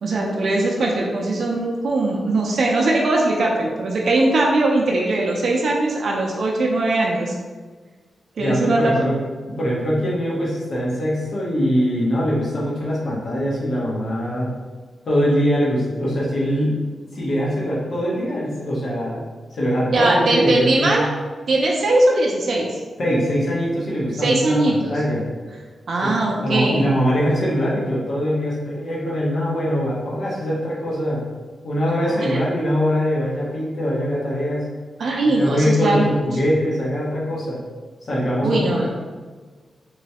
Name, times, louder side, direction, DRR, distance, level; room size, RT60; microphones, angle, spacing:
voice 1, 0.0-7.4 8.4-8.9 19.9-21.1 21.5-22.8 24.1-25.0 25.9-26.9 32.1-32.4 35.0-36.2 38.4-38.9, right 2 dB, 55° right, -1 dB, 0.4 m, -20 dB
voice 2, 8.4-9.1 9.5-14.5 15.0-16.8 17.1-19.2 19.6-21.0 23.0-24.6 24.9-25.2 26.0-31.2 31.6-34.7 35.2-37.6 38.1-38.9, equal, 50° left, -6 dB, 0.8 m, -22 dB
3.2 x 3.0 x 2.8 m, 1.4 s
wide cardioid pair, 170°, 0 cm